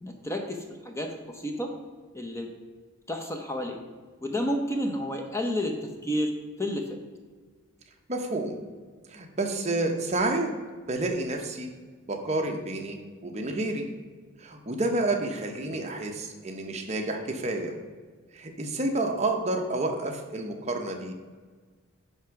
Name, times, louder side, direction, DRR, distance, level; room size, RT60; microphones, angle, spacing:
voice 1, 0.0-1.7 2.1-2.5 3.1-3.8 4.2-7.0, left 1 dB, 15° left, 3 dB, 0.7 m, -31 dB
voice 2, 8.1-8.6 9.1-10.5 10.9-11.7 12.1-13.9 14.4-17.7 18.3-21.1, right 2 dB, 30° right, 3 dB, 0.8 m, -29 dB
9.9 x 3.5 x 5.8 m, 1.5 s
head